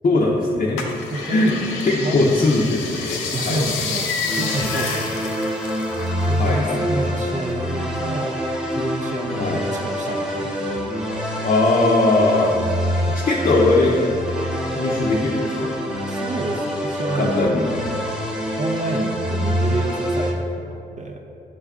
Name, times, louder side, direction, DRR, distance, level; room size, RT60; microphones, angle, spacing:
voice 1, 0.0-0.8 1.3-1.5 1.8-3.7 6.3-7.1 9.4-9.6 11.4-12.5 13.1-13.9 14.7-15.7 17.1-17.7, left 2 dB, 40° left, -3 dB, 0.6 m, -20 dB
sound 1, 0.8-6.6 6.9-8.2 8.6-9.5 10.0-10.1, left 4 dB, 85° left, 0.4 m, -29 dB
voice 2, 1.1-1.6 2.0-2.2 3.3-5.3 6.3-8.3 8.7-10.8 16.1-17.5 18.6-21.2, right 2 dB, 40° right, 1 dB, 0.5 m, -29 dB
sound 2, 4.3-20.3, equal, 5° right, 0.8 m, -25 dB
6.3 x 2.3 x 3.5 m, 2.7 s
hypercardioid pair, 45°, 20 cm